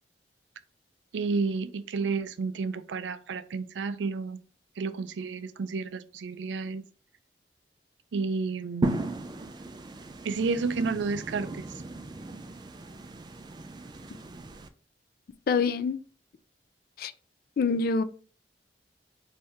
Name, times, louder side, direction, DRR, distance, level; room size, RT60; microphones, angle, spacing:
voice 1, 1.1-4.4 4.8-6.8 8.1-9.1 10.2-11.7, right 4 dB, 90° right, 0.4 m, -31 dB
sound 1, 8.8-14.7, right 2 dB, 25° right, 0.3 m, -36 dB
voice 2, 15.5-16.0 17.0-17.1 17.6-18.0, left 5 dB, 55° left, 0.3 m, -25 dB
3.5 x 2.7 x 4.3 m
head